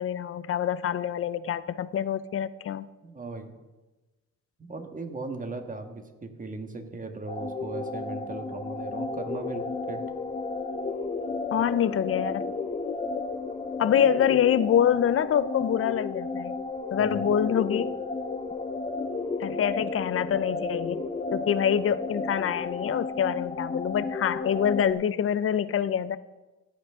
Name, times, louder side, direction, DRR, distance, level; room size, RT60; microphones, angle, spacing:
voice 1, 0.0-2.9 11.5-12.5 13.8-16.5 16.9-17.9 19.4-21.0 21.3-26.2, left 9 dB, 45° left, 15 dB, 0.6 m, -25 dB
voice 2, 3.0-3.5 4.6-10.0 13.9-14.3 17.0-17.4, right 3 dB, 25° right, 6 dB, 1.5 m, -38 dB
sound 1, 7.3-24.9, left 3 dB, 20° left, 0.8 m, -33 dB
16.0 x 9.1 x 3.7 m, 1.1 s
cardioid pair, 90°, 30 cm